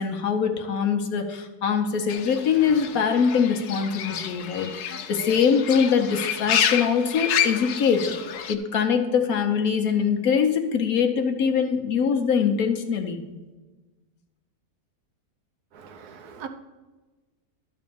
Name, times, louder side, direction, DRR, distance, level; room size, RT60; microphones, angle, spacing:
voice 1, 0.0-8.1 8.5-13.2, left 6 dB, 70° left, 5 dB, 1.3 m, -23 dB
Fowl / Bird, 2.1-8.5, left 9 dB, 85° left, 1.2 m, -29 dB
voice 2, 15.7-16.5, right 7 dB, 80° right, 7 dB, 1.4 m, -40 dB
12.0 x 4.1 x 6.9 m, 1.2 s
omnidirectional pair, 1.6 m